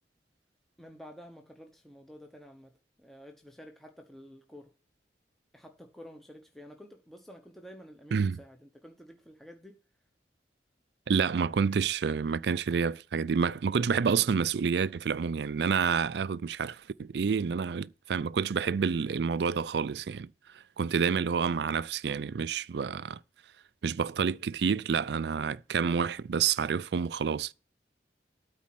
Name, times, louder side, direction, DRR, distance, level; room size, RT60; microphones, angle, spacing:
voice 1, 0.8-4.7 5.5-9.8 21.3-21.5, equal, ahead, 0.9 m, -50 dB
voice 2, 11.1-23.2 23.8-27.5, right 6 dB, 70° right, 0.4 m, -29 dB
12.5 x 4.2 x 7.6 m
head